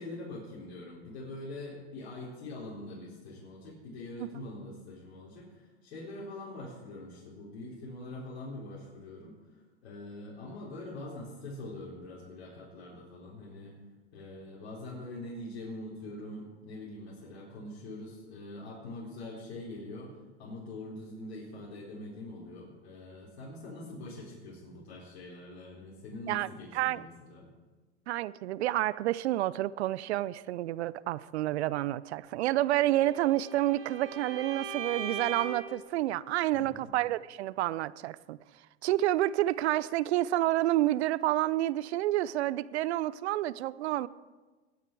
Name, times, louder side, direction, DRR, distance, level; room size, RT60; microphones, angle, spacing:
voice 1, 0.0-13.8 14.1-27.5 36.5-36.9, left 2 dB, 70° left, -5 dB, 4.1 m, -44 dB
voice 2, 28.1-38.4 38.8-44.1, right 15 dB, 75° right, 19 dB, 0.6 m, -29 dB
Bowed string instrument, 32.7-35.8, right 5 dB, 40° right, 5.0 m, -39 dB
20.5 x 9.6 x 4.7 m, 1.3 s
hypercardioid pair, 110°, 33 cm